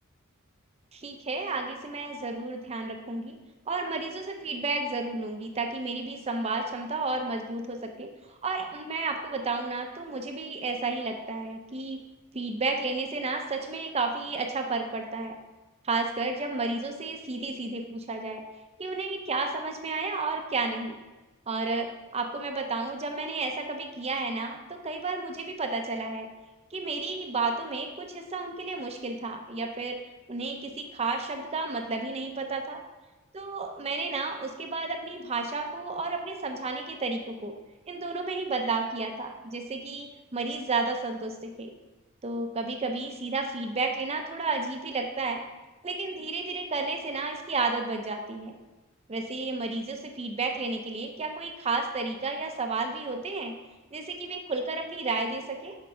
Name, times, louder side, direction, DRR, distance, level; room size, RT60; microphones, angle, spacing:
voice 1, 0.9-3.4 3.7-12.0 12.3-15.4 15.8-18.4 18.8-21.0 21.5-26.3 26.7-30.0 30.3-32.8 33.3-37.5 37.9-41.7 42.2-45.4 45.8-48.6 49.1-53.6 53.9-55.8, right 3 dB, 30° right, 4 dB, 0.6 m, -32 dB
6.8 x 4.8 x 5.1 m, 1.2 s
head